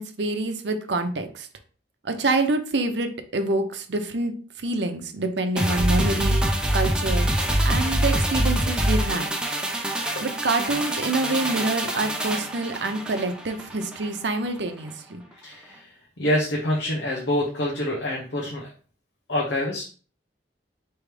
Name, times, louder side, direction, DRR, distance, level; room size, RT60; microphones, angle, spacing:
voice 1, 0.0-1.5 2.0-7.3 7.6-9.3 10.2-15.2, right 2 dB, 80° right, 6 dB, 0.7 m, -26 dB
sound 1, 5.6-14.1 14.4-14.6, right 1 dB, 5° right, 0.5 m, -25 dB
voice 2, 15.4-15.9 16.2-18.7 19.3-19.8, left 1 dB, 90° left, -2 dB, 0.9 m, -26 dB
4.7 x 3.1 x 3.3 m, 0.41 s
head